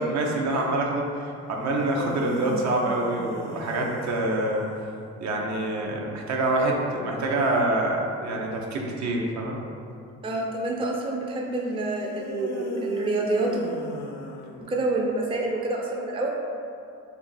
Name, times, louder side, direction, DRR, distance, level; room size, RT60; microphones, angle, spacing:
voice 1, 0.0-4.7 5.2-9.6, right 2 dB, 65° right, 0 dB, 0.6 m, -26 dB
sound 1, 1.7-4.9 12.1-15.0, left 2 dB, 65° left, 0.5 m, -37 dB
voice 2, 10.2-13.7 14.6-16.3, right 2 dB, 20° right, -1 dB, 0.4 m, -27 dB
2.9 x 2.4 x 3.9 m, 2.5 s
cardioid pair, 90°, 30 cm